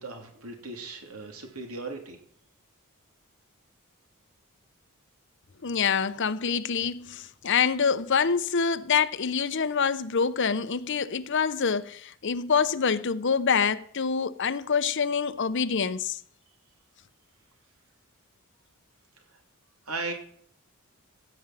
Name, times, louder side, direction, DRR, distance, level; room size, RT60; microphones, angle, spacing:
voice 1, 0.0-2.2 19.9-20.1, right 3 dB, 80° right, 3.2 m, -37 dB
voice 2, 5.6-16.2, left 6 dB, 55° left, 0.7 m, -26 dB
15.5 x 5.4 x 9.1 m
head